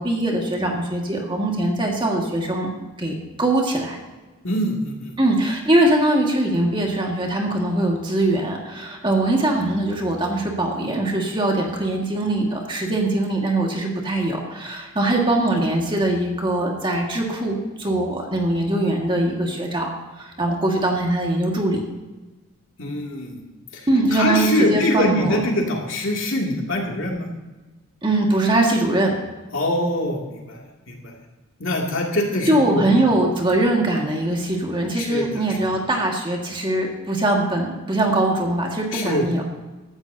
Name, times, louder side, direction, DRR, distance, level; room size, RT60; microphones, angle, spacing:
voice 1, 0.0-2.7 3.0-4.0 5.2-21.8 23.9-25.4 28.0-29.2 32.5-39.4, right 1 dB, 25° right, 0 dB, 1.9 m, -22 dB
voice 2, 4.4-5.2 22.8-23.4 23.7-27.3 29.5-31.2 31.6-33.1 34.9-35.7 38.9-39.3, left 1 dB, 65° left, -1 dB, 2.7 m, -24 dB
16.0 x 13.5 x 2.9 m, 1.2 s
head